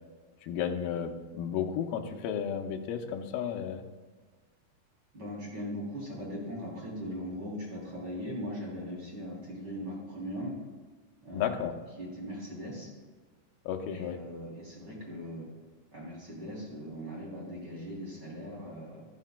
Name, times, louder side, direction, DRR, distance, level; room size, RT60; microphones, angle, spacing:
voice 1, 0.4-3.8 11.3-11.7 13.7-14.2, left 8 dB, 80° left, 4 dB, 2.2 m, -33 dB
voice 2, 5.1-10.6 11.2-11.7 12.0-12.9 13.9-15.5 15.9-19.0, equal, 25° right, -5 dB, 3.2 m, -39 dB
13.0 x 13.0 x 2.2 m, 1.4 s
omnidirectional pair, 5.1 m